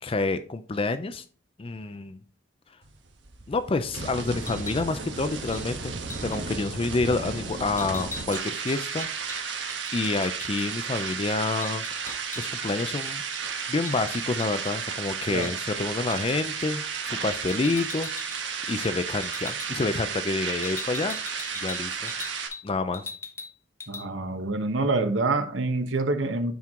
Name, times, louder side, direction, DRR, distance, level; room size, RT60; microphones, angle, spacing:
voice 1, 0.0-1.2 1.6-2.2 3.5-5.9 6.2-9.6 9.9-13.2 13.7-18.1 18.7-21.2 21.6-22.1 22.6-23.1, left 3 dB, 30° left, 11 dB, 0.4 m, -28 dB
sound 1, 2.8-22.5, right 5 dB, 70° right, 1.4 m, -33 dB
sound 2, 4.4-4.8 5.5-5.7 6.1-6.4 7.8-10.7 11.0-11.1 11.4-12.7 13.0-15.0 15.4-15.6 16.1-16.3 17.3-18.4 18.7-18.9 19.2-19.7 20.6-22.7 22.9-23.5 23.8-24.0, left 4 dB, 15° left, 0.8 m, -41 dB
voice 2, 23.9-26.5, right 3 dB, 85° right, 7 dB, 1.1 m, -26 dB
9.3 x 4.6 x 3.7 m, 0.41 s
head